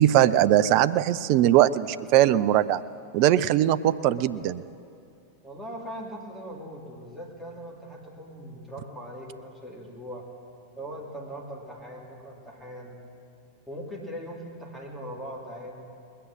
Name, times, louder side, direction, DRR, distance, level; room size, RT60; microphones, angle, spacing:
voice 1, 0.0-2.8 3.1-4.6, right 12 dB, 45° right, 15 dB, 0.4 m, -20 dB
voice 2, 5.4-10.3 10.8-13.0 13.7-15.9, equal, 5° left, -4 dB, 2.6 m, -40 dB
20.0 x 8.4 x 7.4 m, 2.5 s
figure-of-eight pair, 90°, 0 cm